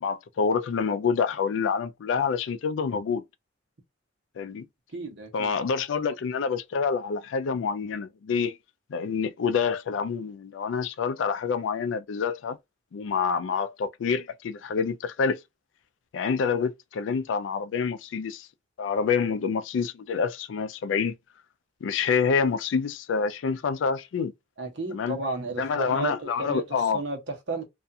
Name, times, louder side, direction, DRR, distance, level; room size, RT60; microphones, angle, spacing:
voice 1, 0.0-3.2 4.4-4.7 5.3-8.6 8.9-12.6 12.9-15.4 16.1-18.5 18.8-21.2 21.8-24.3 24.9-25.2 25.6-27.0, left 5 dB, 90° left, 0.3 m, -27 dB
voice 2, 4.9-5.5 24.6-27.6, right 3 dB, 65° right, 0.8 m, -33 dB
2.4 x 2.3 x 2.6 m
head